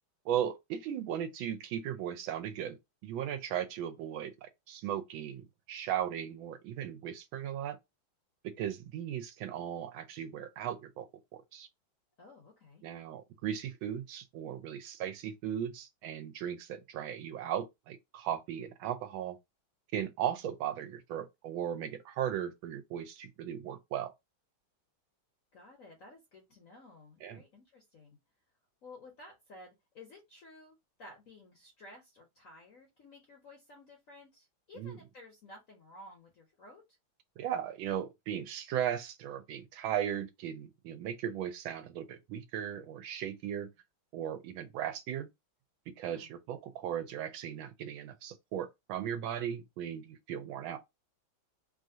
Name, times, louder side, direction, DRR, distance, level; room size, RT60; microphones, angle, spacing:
voice 1, 0.2-7.8 8.4-11.1 11.3-11.7 12.8-19.4 19.9-24.1 27.2-27.4 34.8-35.0 37.4-43.7 44.1-45.3 45.9-50.8, right 10 dB, 80° right, 1.3 m, -37 dB
voice 2, 12.2-12.8 25.5-28.2 28.8-37.0 46.1-46.3, left 2 dB, 60° left, 0.9 m, -54 dB
3.2 x 2.4 x 2.7 m
omnidirectional pair, 2.2 m